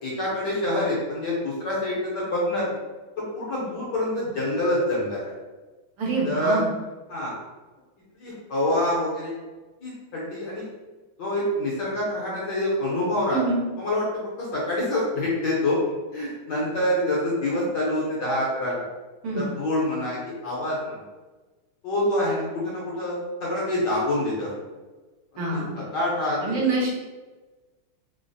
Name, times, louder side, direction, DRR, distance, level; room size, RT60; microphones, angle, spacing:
voice 1, 0.0-2.8 3.3-5.3 6.2-6.6 7.1-7.3 8.2-9.3 9.8-10.7 11.2-13.4 13.8-14.0 14.4-15.8 16.1-18.8 19.3-20.2 20.4-21.0 21.8-24.5 25.3-26.6, left 1 dB, 65° left, -6 dB, 1.2 m, -26 dB
voice 2, 6.0-6.7 13.3-13.6 19.2-19.5 25.4-25.7 26.4-26.9, right 3 dB, 75° right, -6 dB, 1.7 m, -25 dB
3.8 x 2.0 x 2.6 m, 1.2 s
omnidirectional pair, 2.4 m